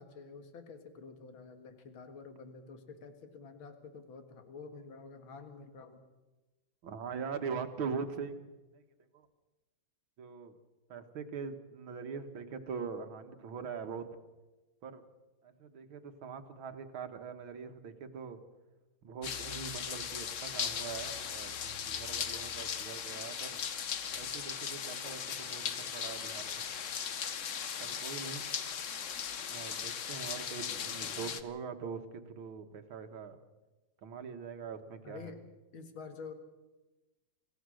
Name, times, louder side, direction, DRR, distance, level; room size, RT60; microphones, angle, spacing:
voice 1, 0.0-6.0 35.0-35.4 35.7-36.3, left 4 dB, 75° left, 7 dB, 2.6 m, -49 dB
voice 2, 6.8-8.4 8.7-8.8 9.1-9.3 10.2-10.5 10.9-14.1 14.8-15.0 15.4-18.4 19.0-23.6 24.2-26.7 27.8-28.5 29.5-33.4 34.0-35.3, right 6 dB, 75° right, 7 dB, 2.3 m, -42 dB
sound 1, 19.2-31.4, left 7 dB, 50° left, 1.0 m, -38 dB
27.0 x 16.0 x 6.4 m, 1.1 s
omnidirectional pair, 2.3 m